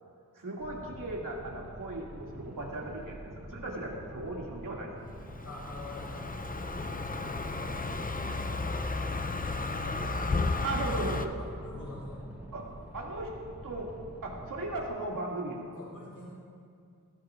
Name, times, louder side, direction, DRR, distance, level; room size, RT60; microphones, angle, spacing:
voice 1, 0.3-4.9 10.6-11.3 12.5-12.7 12.9-13.3 13.6-13.9 14.2-15.8, right 2 dB, 75° right, -3 dB, 2.5 m, -37 dB
Boat Water vehicle, 0.6-14.8, equal, 5° right, 3.5 m, -47 dB
Car passing by, 5.2-11.3, left 3 dB, 25° left, 0.6 m, -33 dB
voice 2, 5.4-10.2 11.4-12.2 15.7-16.3, left 2 dB, 70° left, -5 dB, 3.4 m, -47 dB
19.0 x 15.0 x 2.5 m, 2.3 s
wide cardioid pair, 100°, 32 cm